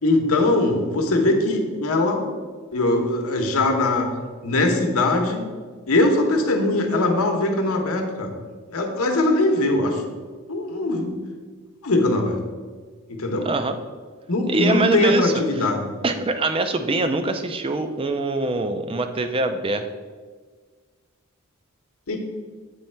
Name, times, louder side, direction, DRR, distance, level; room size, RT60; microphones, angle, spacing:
voice 1, 0.0-2.3 2.7-4.1 4.4-5.5 5.9-8.3 8.7-10.0 10.5-11.2 11.8-12.4 13.1-13.5 14.3-15.8 22.1-22.2, left 2 dB, 75° left, 3 dB, 0.9 m, -21 dB
voice 2, 13.4-13.8 14.5-15.3 16.0-19.9, right 2 dB, 25° right, 8 dB, 0.4 m, -23 dB
7.9 x 3.2 x 4.4 m, 1.5 s
head